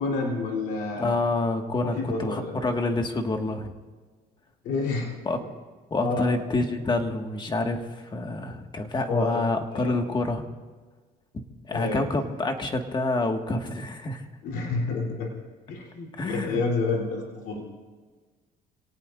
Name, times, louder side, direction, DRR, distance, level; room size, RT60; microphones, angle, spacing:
voice 1, 0.0-1.1 1.8-2.5 4.6-5.2 6.0-6.3 9.1-9.4 9.7-10.0 11.7-12.1 14.4-15.3 15.7-17.6, left 3 dB, 80° left, 0 dB, 3.5 m, -29 dB
voice 2, 1.0-3.7 5.3-5.4 5.9-10.4 11.3-14.2 16.2-16.6, left 2 dB, 25° left, 4 dB, 1.8 m, -27 dB
28.0 x 18.0 x 2.6 m, 1.4 s
cardioid pair, 110°, 17 cm